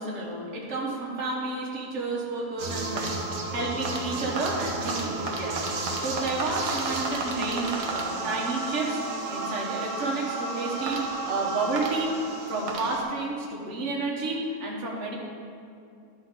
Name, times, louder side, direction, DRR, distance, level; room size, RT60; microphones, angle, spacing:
voice 1, 0.0-12.1 12.5-15.2, right 3 dB, 50° right, -3 dB, 1.4 m, -31 dB
sound 1, 2.6-13.0, right 3 dB, 65° right, 1.3 m, -32 dB
11.5 x 4.5 x 3.7 m, 2.5 s
omnidirectional pair, 1.7 m